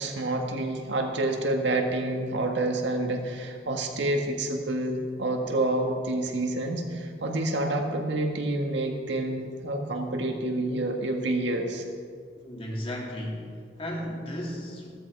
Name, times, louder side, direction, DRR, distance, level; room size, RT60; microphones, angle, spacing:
voice 1, 0.0-11.8, right 2 dB, 70° right, 2 dB, 1.8 m, -28 dB
voice 2, 12.4-14.9, equal, 30° left, -2 dB, 2.8 m, -35 dB
15.0 x 14.0 x 4.8 m, 2.1 s
head